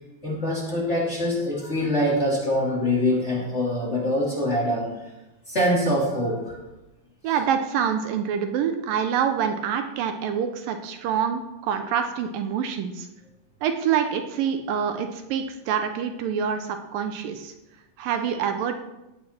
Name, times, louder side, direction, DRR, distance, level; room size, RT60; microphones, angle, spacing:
voice 1, 0.2-5.1 5.5-6.6 7.2-7.4, left 1 dB, 20° left, -5 dB, 2.3 m, -24 dB
voice 2, 7.2-13.1 13.6-17.5 18.0-18.8, right 8 dB, 80° right, 7 dB, 2.4 m, -26 dB
17.5 x 8.4 x 4.4 m, 0.97 s
omnidirectional pair, 4.2 m